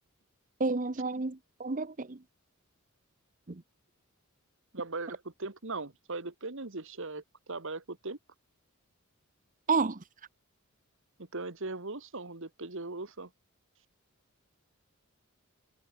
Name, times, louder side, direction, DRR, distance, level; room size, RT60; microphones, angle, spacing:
voice 1, 0.6-2.2 3.5-3.6 9.7-10.0, right 4 dB, 35° right, 0.9 m, -30 dB
voice 2, 4.7-8.2 11.2-13.3, right 3 dB, 60° right, 1.9 m, -39 dB
head